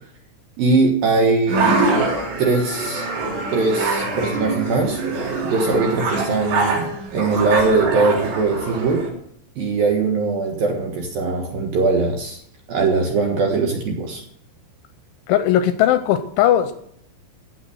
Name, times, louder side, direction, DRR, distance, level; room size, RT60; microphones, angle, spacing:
voice 1, 0.6-1.8 2.4-3.1 3.5-5.0 5.4-9.1 9.6-12.4 12.7-14.2, right 3 dB, 65° right, 1 dB, 2.4 m, -21 dB
sound 1, 1.5-9.1, right 3 dB, 90° right, 6.6 m, -24 dB
voice 2, 15.3-16.7, left 11 dB, 85° left, 10 dB, 2.9 m, -18 dB
15.5 x 7.0 x 7.9 m, 0.68 s
omnidirectional pair, 6.0 m